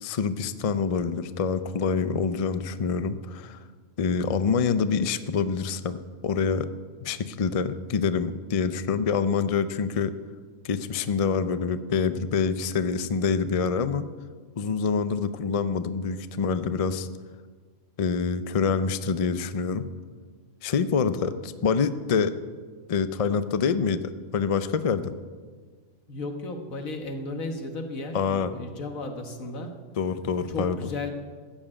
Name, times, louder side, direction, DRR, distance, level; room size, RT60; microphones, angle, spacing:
voice 1, 0.0-3.6 4.0-6.7 7.0-10.1 10.6-14.1 14.6-17.1 18.0-19.9 20.6-22.3 22.9-25.2 28.1-28.5 30.0-30.8, left 5 dB, 50° left, 12 dB, 0.4 m, -26 dB
voice 2, 26.1-29.8 30.5-31.1, left 2 dB, 80° left, 5 dB, 1.8 m, -34 dB
14.0 x 7.3 x 8.7 m, 1.5 s
omnidirectional pair, 1.4 m